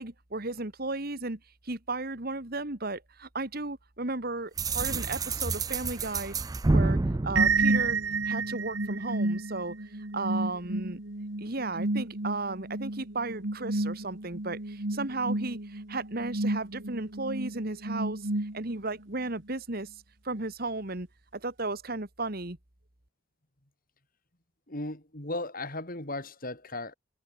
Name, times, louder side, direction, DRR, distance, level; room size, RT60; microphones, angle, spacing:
voice 1, 0.0-6.3 6.7-7.0 7.2-8.0 8.2-9.7 10.1-11.0 11.4-18.3 18.5-19.9 20.2-21.1 21.3-22.6, right 2 dB, 50° right, 2.2 m, -34 dB
sound 1, 4.6-8.4, right 3 dB, 20° right, 0.4 m, -29 dB
sound 2, 7.4-19.0, right 3 dB, 70° right, 2.3 m, -31 dB
voice 2, 24.7-26.9, left 2 dB, 45° left, 4.8 m, -36 dB
head